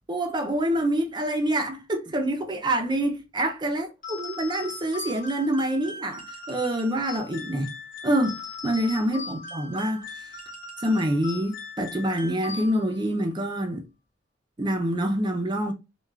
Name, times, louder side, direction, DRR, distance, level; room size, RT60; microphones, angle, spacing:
voice 1, 0.1-7.7 8.0-10.1 10.8-13.8 14.6-15.7, right 1 dB, 25° right, 0.5 m, -26 dB
sound 1, 4.0-13.1, left 3 dB, 45° left, 0.7 m, -39 dB
2.3 x 2.2 x 3.1 m
head